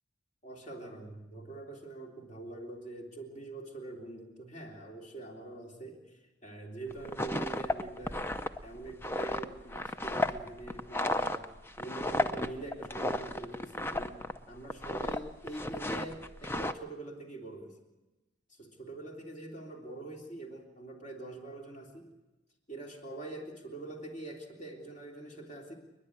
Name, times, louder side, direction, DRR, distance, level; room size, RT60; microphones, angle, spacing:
voice 1, 0.4-8.3 8.6-11.5 11.8-17.8 18.5-22.1 22.7-25.8, right 2 dB, 40° left, 1 dB, 3.4 m, -44 dB
sound 1, 6.9-14.4 14.7-15.2 15.5-16.7, left 2 dB, 10° left, 0.6 m, -33 dB
30.0 x 10.5 x 9.8 m, 1.1 s
head